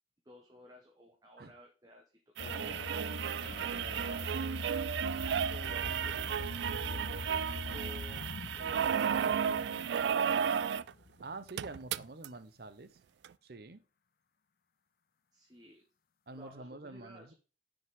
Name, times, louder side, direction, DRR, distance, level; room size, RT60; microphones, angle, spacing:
voice 1, 0.2-2.0 2.4-3.2 3.6-4.4 4.9-8.9 9.4-10.6 15.3-15.8 16.4-17.3, equal, 20° right, 2 dB, 1.1 m, -56 dB
sound 1, 2.4-11.5, left 3 dB, 55° left, 0.4 m, -43 dB
sound 2, 2.4-10.9 11.2-11.3 11.5-12.3 13.2-13.3, right 8 dB, 75° right, 0.3 m, -33 dB
voice 2, 3.4-4.5 11.2-12.9 13.4-13.8 16.3-17.3, right 3 dB, 55° right, 12 dB, 0.8 m, -47 dB
9.8 x 5.1 x 3.7 m, 0.34 s
head